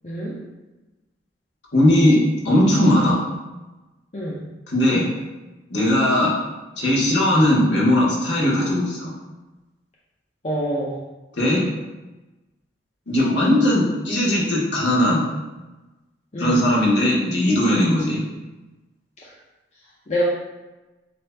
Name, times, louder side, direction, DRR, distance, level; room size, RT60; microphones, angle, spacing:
voice 1, 0.0-0.4 4.1-4.4 10.4-10.9 13.4-13.6 16.3-16.7 19.2-19.3 20.1-20.2, equal, 40° left, -6 dB, 0.6 m, -26 dB
voice 2, 1.7-3.2 4.7-5.1 5.7-6.3 6.8-9.1 11.4-11.7 13.1-15.2 16.4-18.2, left 1 dB, 65° left, -6 dB, 1.4 m, -18 dB
7.5 x 2.9 x 2.3 m, 1.1 s
head